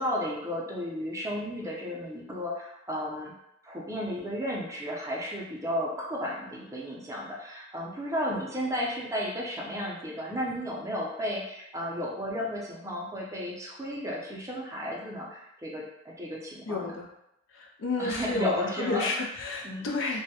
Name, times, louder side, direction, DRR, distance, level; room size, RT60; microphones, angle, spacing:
voice 1, 0.0-3.3 3.6-16.9 18.0-19.1 19.6-20.2, equal, 15° right, -3 dB, 0.4 m, -33 dB
voice 2, 16.7-17.1 17.5-20.2, left 3 dB, 75° left, 0 dB, 0.4 m, -31 dB
2.2 x 2.0 x 2.7 m, 0.82 s
head